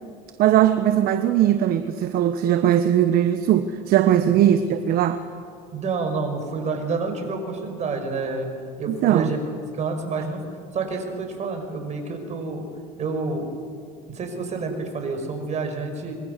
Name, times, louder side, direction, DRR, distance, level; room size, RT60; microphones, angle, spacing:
voice 1, 0.4-5.2 8.9-9.3, right 11 dB, 55° right, 10 dB, 1.2 m, -19 dB
voice 2, 5.7-8.5 8.8-9.4 9.7-10.4 10.7-12.6 13.0-13.5 14.1-16.2, right 4 dB, 40° right, 5 dB, 5.6 m, -28 dB
25.0 x 22.5 x 6.8 m, 2.3 s
supercardioid pair, 95°, 18 cm